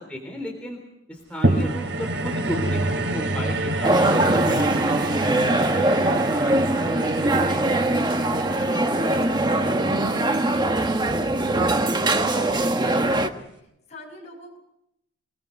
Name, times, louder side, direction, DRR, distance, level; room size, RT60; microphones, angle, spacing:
voice 1, 0.1-0.8 1.1-5.0, equal, 5° left, 0 dB, 3.8 m, -33 dB
sound 1, 1.4-11.9 12.5-12.6, right 1 dB, 85° right, 3.7 m, -28 dB
sound 2, 3.8-13.3, right 2 dB, 25° right, 1.3 m, -22 dB
voice 2, 5.9-8.7 9.1-14.6, equal, 40° left, 1 dB, 7.4 m, -43 dB
28.0 x 19.5 x 5.4 m, 0.80 s
head